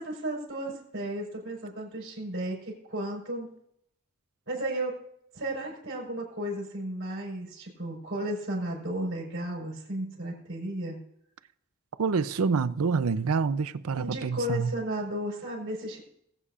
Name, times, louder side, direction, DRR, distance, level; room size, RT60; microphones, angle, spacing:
voice 1, 0.0-3.5 4.5-5.0 5.3-11.0 13.9-16.0, right 1 dB, 55° right, 4.5 m, -34 dB
voice 2, 12.0-14.7, right 5 dB, 85° right, 0.5 m, -27 dB
21.0 x 8.2 x 2.5 m
head